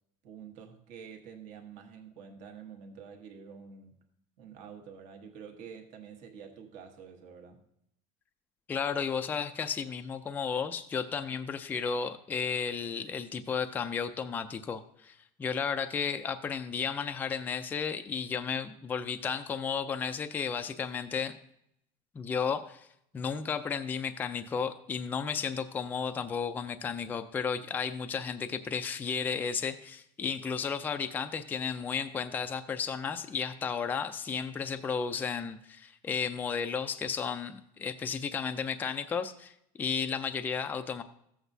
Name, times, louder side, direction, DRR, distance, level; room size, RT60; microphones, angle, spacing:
voice 1, 0.2-3.9 4.4-7.6, right 7 dB, 55° right, 4 dB, 1.3 m, -48 dB
voice 2, 8.7-21.4 22.1-22.9 23.1-41.0, left 6 dB, 10° left, 7 dB, 0.3 m, -33 dB
14.5 x 8.0 x 2.7 m, 0.74 s
cardioid pair, 180°, 15 cm